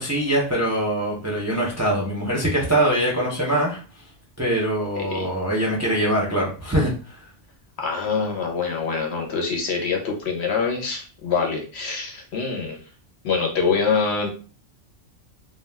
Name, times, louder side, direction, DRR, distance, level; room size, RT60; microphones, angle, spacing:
voice 1, 0.0-3.8 4.4-7.3, right 1 dB, 20° right, -3 dB, 0.5 m, -23 dB
voice 2, 7.8-12.8 13.2-14.3, left 5 dB, 70° left, 1 dB, 1.0 m, -25 dB
2.3 x 2.3 x 3.3 m, 0.37 s
omnidirectional pair, 1.2 m